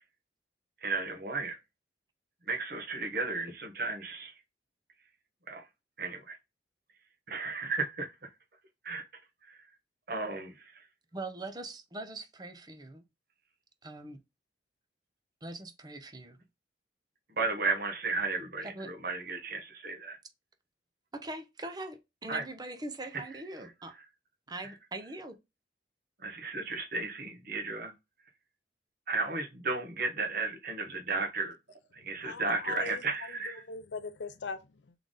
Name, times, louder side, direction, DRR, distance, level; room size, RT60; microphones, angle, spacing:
voice 1, 0.8-1.6 2.4-4.4 5.5-5.7 6.0-6.4 7.3-8.3 8.8-9.0 9.4-9.7 10.1-10.9 17.3-20.2 22.3-22.5 23.1-24.1 24.6-24.8 26.2-27.9 29.1-31.6 31.9-33.6, right 3 dB, 55° right, 1.1 m, -34 dB
voice 2, 11.1-13.0 13.8-14.2 15.4-16.4 18.6-18.9 21.1-23.9 24.5-25.4, right 2 dB, 20° right, 0.6 m, -42 dB
voice 3, 32.0-33.0 33.7-34.9, left 4 dB, 75° left, 0.5 m, -41 dB
3.9 x 3.4 x 3.7 m
head